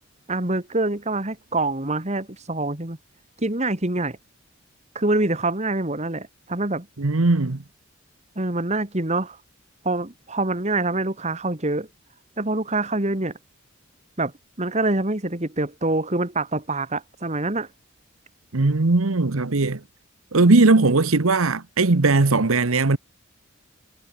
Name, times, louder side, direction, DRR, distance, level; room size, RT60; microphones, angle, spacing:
voice 1, 0.3-3.0 3.4-4.2 5.0-6.9 8.4-9.4 9.8-11.9 12.4-13.3 14.2-14.3 14.6-17.7, right 2 dB, 35° right, 2.1 m, -25 dB
voice 2, 7.0-7.6 18.5-19.8 20.3-23.0, right 3 dB, 85° right, 1.1 m, -18 dB
head